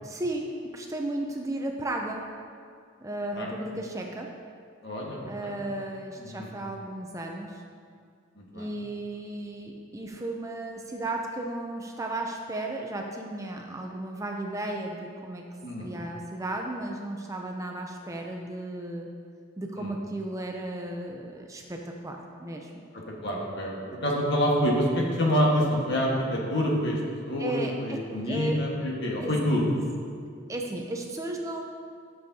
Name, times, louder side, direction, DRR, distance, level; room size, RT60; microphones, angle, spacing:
voice 1, 0.0-2.2 3.0-4.3 5.3-7.6 8.5-15.4 15.8-19.1 19.6-22.8 27.4-28.0 28.2-28.5 29.2-29.3 30.5-31.6, right 1 dB, 15° right, 1 dB, 0.5 m, -34 dB
voice 2, 4.8-5.6 6.2-6.5 8.4-8.7 15.6-15.9 19.8-19.9 22.9-27.0 27.3-29.7, equal, 55° left, -2 dB, 1.5 m, -27 dB
12.5 x 6.9 x 2.8 m, 2.2 s
head